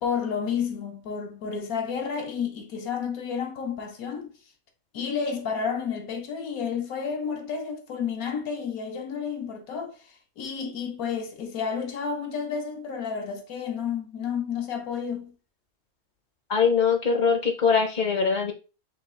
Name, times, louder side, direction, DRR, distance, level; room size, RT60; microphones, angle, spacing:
voice 1, 0.0-4.3 4.9-15.4, left 6 dB, 75° left, 1.2 m, -31 dB
voice 2, 16.5-18.5, left 5 dB, 45° left, 0.6 m, -22 dB
5.8 x 2.4 x 3.6 m
omnidirectional pair, 1.6 m